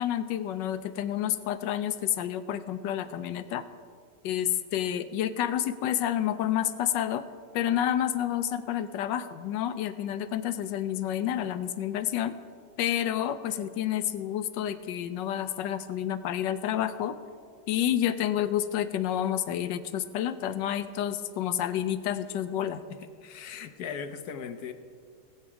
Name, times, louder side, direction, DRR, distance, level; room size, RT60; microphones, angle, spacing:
voice 1, 0.0-3.6 4.2-7.2 7.5-12.4 12.8-17.1 17.7-22.8, left 11 dB, 80° left, 12 dB, 1.3 m, -29 dB
voice 2, 23.2-24.7, left 7 dB, 65° left, 8 dB, 1.2 m, -38 dB
19.0 x 8.2 x 4.8 m, 2.1 s
omnidirectional pair, 2.0 m